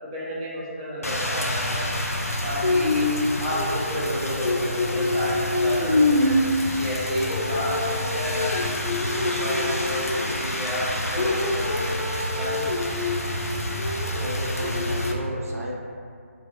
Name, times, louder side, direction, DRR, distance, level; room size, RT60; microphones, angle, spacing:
voice 1, 0.0-1.9 2.4-3.1 3.4-6.4 6.8-8.7 9.1-10.8 11.1-12.0 12.4-12.9, equal, 25° right, -7 dB, 0.4 m, -32 dB
Rain, 1.0-15.1, left 1 dB, 85° left, 0.3 m, -25 dB
voice 2, 14.2-15.7, equal, 75° right, -3 dB, 0.5 m, -33 dB
2.3 x 2.3 x 2.4 m, 2.2 s
figure-of-eight pair, 150°, 8 cm